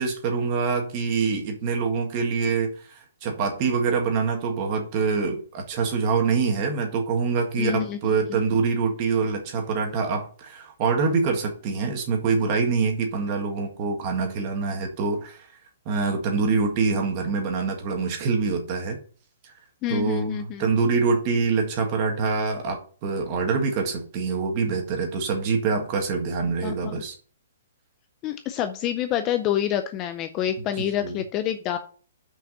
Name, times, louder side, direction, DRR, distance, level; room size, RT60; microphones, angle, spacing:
voice 1, 0.0-2.7 3.2-15.5 15.8-19.0 19.4-19.5 19.9-27.1 30.8-31.2, right 5 dB, 25° right, 3 dB, 1.7 m, -25 dB
voice 2, 7.6-8.4 19.8-20.7 26.6-26.9 28.2-31.8, left 10 dB, 20° left, 8 dB, 0.5 m, -27 dB
6.2 x 5.1 x 6.5 m, 0.42 s
hypercardioid pair, 175°, 0 cm